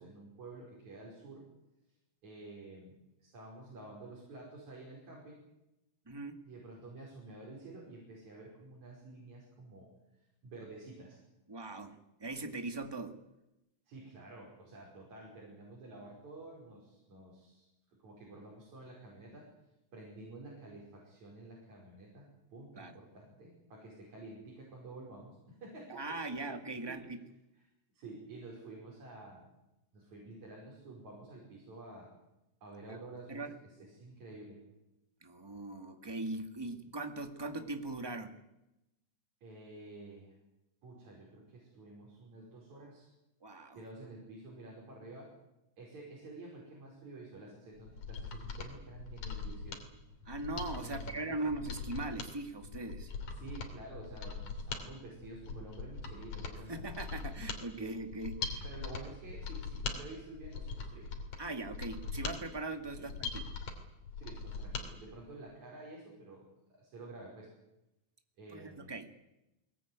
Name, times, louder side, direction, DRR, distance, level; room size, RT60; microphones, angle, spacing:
voice 1, 0.0-1.5 2.2-5.4 6.5-9.9 10.4-11.2 13.9-17.7 17.9-19.5 19.9-26.5 26.9-27.2 27.9-29.5 29.9-32.1 32.6-34.6 36.7-36.8 39.4-40.3 40.8-43.1 43.7-45.3 45.8-49.9 50.8-51.4 53.3-56.8 57.8-58.0 58.6-61.1 63.0-63.1 64.2-67.5 68.4-68.9, right 2 dB, 65° right, -3 dB, 6.7 m, -50 dB
voice 2, 6.0-6.4 11.5-13.2 22.8-22.9 25.9-27.2 32.9-33.0 33.3-33.5 35.2-38.4 43.4-43.8 50.2-53.1 56.7-58.6 61.4-63.5 68.5-69.1, right 2 dB, 10° right, 6 dB, 1.5 m, -40 dB
Mechanisms, 47.8-64.9 65.2-65.3, left 4 dB, 75° left, 4.4 m, -41 dB
23.0 x 19.0 x 9.5 m, 0.92 s
omnidirectional pair, 3.5 m